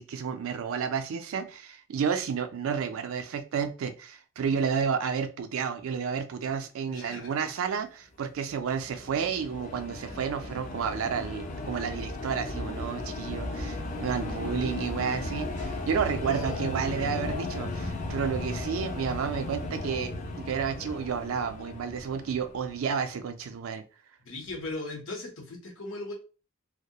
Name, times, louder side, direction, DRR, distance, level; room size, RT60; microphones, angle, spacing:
voice 1, 0.0-20.1 20.4-23.8, right 6 dB, 80° right, 0.4 m, -31 dB
voice 2, 6.8-7.5 16.2-16.9 24.2-26.1, left 2 dB, 75° left, 0.8 m, -39 dB
sound 1, 8.5-23.0, left 2 dB, 35° left, 0.4 m, -36 dB
2.2 x 2.0 x 2.7 m
head